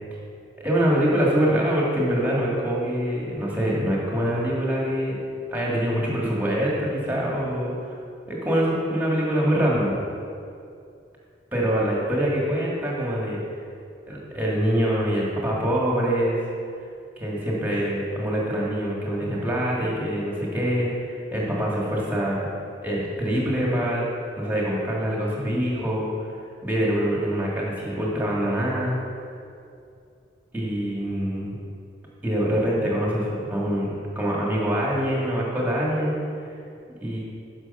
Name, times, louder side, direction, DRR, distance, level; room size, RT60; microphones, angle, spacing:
voice 1, 0.6-5.2 5.5-7.9 8.3-10.0 11.5-13.4 14.1-16.5 17.2-22.4 22.8-24.1 24.4-26.1 26.6-29.0 30.5-31.6 32.2-33.9 34.2-36.2 37.0-37.2, equal, 10° right, -4 dB, 1.8 m, -24 dB
9.7 x 6.2 x 5.5 m, 2.4 s
head